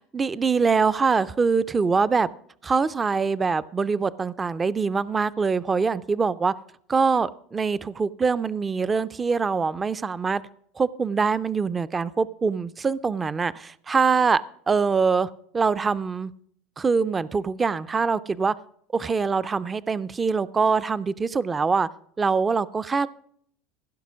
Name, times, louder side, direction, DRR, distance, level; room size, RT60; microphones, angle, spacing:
voice 1, 0.1-2.3 2.6-6.5 6.9-10.4 10.8-16.3 16.8-18.5 18.9-21.9 22.2-23.1, right 5 dB, 20° right, 17 dB, 0.3 m, -24 dB
16.0 x 5.5 x 6.1 m, 0.64 s
supercardioid pair, 125°, 0 cm